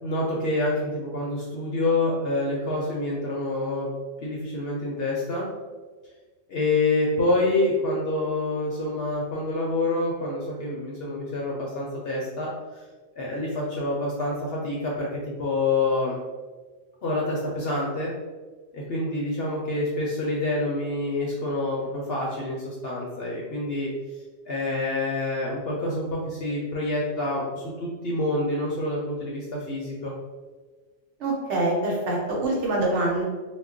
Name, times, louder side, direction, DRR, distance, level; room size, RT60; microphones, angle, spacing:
voice 1, 0.0-3.9 4.2-5.5 6.5-12.8 13.2-16.2 17.0-18.1 18.7-23.9 24.5-30.1, left 2 dB, 60° left, -3 dB, 0.6 m, -27 dB
voice 2, 31.2-33.2, right 2 dB, 65° right, -3 dB, 1.0 m, -25 dB
2.3 x 2.2 x 3.6 m, 1.3 s
omnidirectional pair, 1.4 m